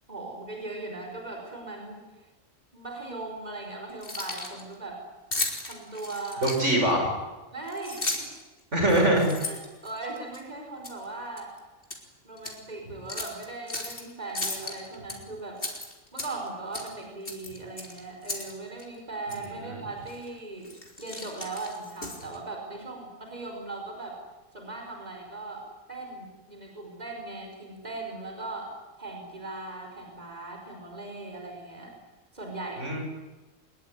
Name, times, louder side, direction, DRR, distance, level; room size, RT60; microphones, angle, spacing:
voice 1, 0.1-2.0 2.7-5.0 5.7-6.5 7.5-8.3 9.4-11.5 12.2-15.6 16.1-20.7 21.0-24.2 24.5-28.7 29.0-31.9 32.3-33.0, right 2 dB, 30° right, 2 dB, 5.3 m, -39 dB
Keys jangling, 3.9-4.6 5.3-6.9 7.7-8.4 8.8-10.4 10.8-11.0 11.4-12.0 12.4-12.5 13.1-14.0 14.3-15.2 15.6-16.5 16.7-16.9 17.2-18.5 18.8-18.9 19.3-19.5 20.1-20.3 20.6-22.4, left 2 dB, 45° left, 4.3 m, -35 dB
voice 2, 6.4-7.1 8.7-9.3 19.7-19.8 32.8-33.0, right 1 dB, 65° right, 2 dB, 6.5 m, -23 dB
23.5 x 22.0 x 9.9 m, 1.2 s
omnidirectional pair, 1.4 m